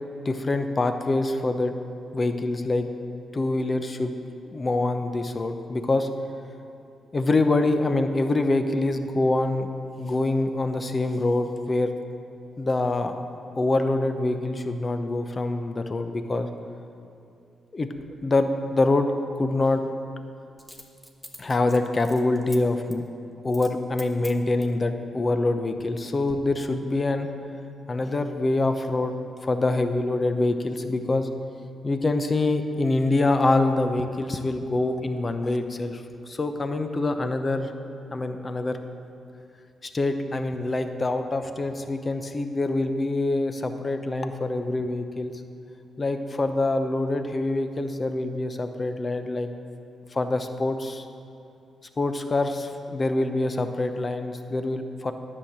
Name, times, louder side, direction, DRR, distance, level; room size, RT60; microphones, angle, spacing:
voice 1, 0.2-1.7 2.1-2.9 3.3-4.1 4.4-6.1 7.1-9.7 10.0-11.9 12.6-13.2 13.6-16.5 17.7-17.9 18.2-19.1 19.4-19.8 21.4-23.0 23.4-27.3 27.9-29.1 29.4-31.3 31.8-36.0 36.3-37.7 38.1-38.8 39.9-45.3 46.0-49.5 50.1-51.0 52.0-55.1, left 2 dB, 35° left, 7 dB, 0.8 m, -25 dB
Coin (dropping), 17.9-18.1 20.6-22.6 22.9-23.1 23.5-23.7 24.0-24.8 25.4-26.0 26.3-26.4, equal, 5° left, 1.2 m, -45 dB
10.0 x 6.5 x 7.2 m, 2.7 s
cardioid pair, 75°, 0 cm